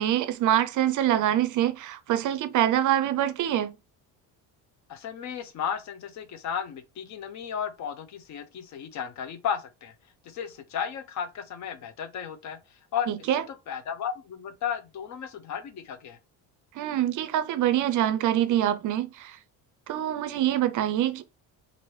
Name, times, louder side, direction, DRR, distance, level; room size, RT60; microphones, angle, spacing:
voice 1, 0.0-3.7 13.1-13.4 16.8-19.4 19.9-21.2, right 12 dB, 50° right, 0.5 m, -25 dB
voice 2, 4.9-9.9 10.2-12.6 12.9-16.2, left 8 dB, 50° left, 0.6 m, -34 dB
2.8 x 2.6 x 3.1 m
cardioid pair, 145°, 38 cm